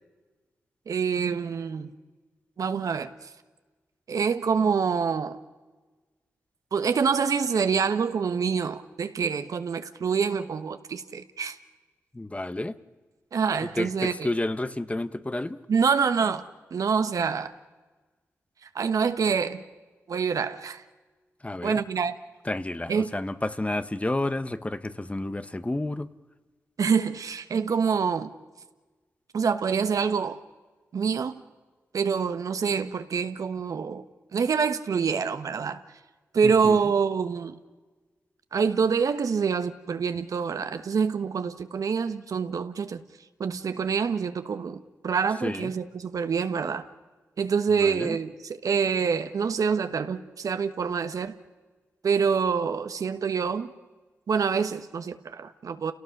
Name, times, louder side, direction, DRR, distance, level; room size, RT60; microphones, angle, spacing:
voice 1, 0.9-1.9 2.6-3.1 4.1-5.4 6.7-11.6 13.3-14.3 15.7-16.4 16.7-17.5 18.7-19.6 20.1-20.8 21.6-22.1 22.9-23.1 26.8-28.3 29.3-30.4 30.9-31.4 31.9-34.0 34.3-35.8 36.3-37.6 38.5-43.0 43.4-46.9 47.4-51.3 52.0-53.7 54.3-55.9, right 6 dB, 70° right, 1.3 m, -26 dB
voice 2, 12.1-12.7 13.8-15.6 21.4-21.8 22.4-26.1 36.4-36.8 45.4-45.7 47.8-48.2, left 2 dB, 20° left, 1.1 m, -30 dB
29.5 x 17.5 x 6.6 m
supercardioid pair, 45°, 6 cm